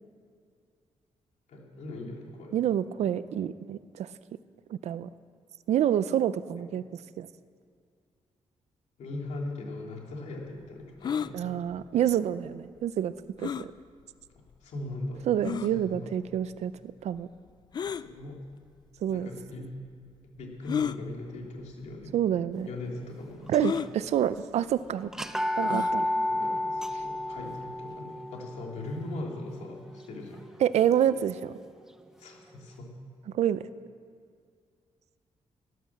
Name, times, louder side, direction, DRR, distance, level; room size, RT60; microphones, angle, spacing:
voice 1, 1.5-2.5 6.6-6.7 9.0-11.6 14.6-15.2 15.6-16.1 18.0-18.4 19.1-19.7 20.4-22.2 22.7-23.9 26.3-30.5 32.2-32.9, left 2 dB, 75° left, 0 dB, 3.0 m, -40 dB
voice 2, 2.5-4.1 4.7-5.1 5.7-6.8 7.2-7.3 11.3-13.7 15.3-16.7 17.0-17.3 19.0-19.3 22.1-22.7 23.5-25.1 25.6-26.1 30.6-31.5 33.3-33.6, right 10 dB, 70° right, 15 dB, 0.5 m, -27 dB
sound 1, 11.0-11.3 13.4-13.7 14.5-14.6 15.4-15.7 17.7-18.0 19.1-19.2 20.6-21.0 21.9-22.0 22.3-22.4 23.6-23.9 25.6-26.0, left 7 dB, 35° left, 0.4 m, -31 dB
sound 2, 23.5-24.0 24.4-24.5 25.1-31.0, left 1 dB, 5° right, 0.6 m, -32 dB
12.5 x 12.0 x 7.3 m, 2.2 s
wide cardioid pair, 160°, 12 cm